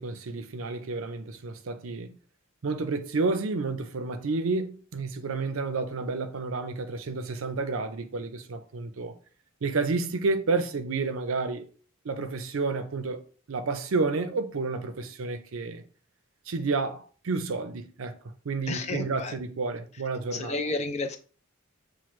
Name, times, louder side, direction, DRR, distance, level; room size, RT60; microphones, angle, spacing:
voice 1, 0.0-2.2 2.6-9.2 9.6-11.7 12.0-13.2 13.5-15.8 16.5-18.2 18.4-20.6, right 3 dB, 70° right, 0.5 m, -30 dB
voice 2, 18.7-19.3 20.3-21.2, left 3 dB, 30° left, 0.4 m, -31 dB
6.0 x 2.1 x 3.1 m
head